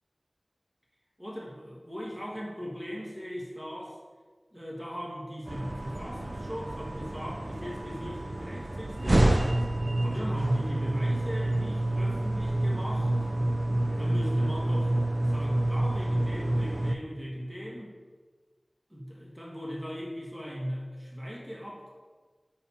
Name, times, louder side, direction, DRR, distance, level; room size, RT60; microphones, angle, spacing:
voice 1, 1.2-4.0 4.5-9.5 10.0-13.1 14.0-17.9 18.9-21.9, equal, 15° right, -4 dB, 1.3 m, -38 dB
sound 1, 5.5-17.0, right 1 dB, 55° right, 0.5 m, -28 dB
6.6 x 5.7 x 4.2 m, 1.4 s
wide cardioid pair, 45°, 0 cm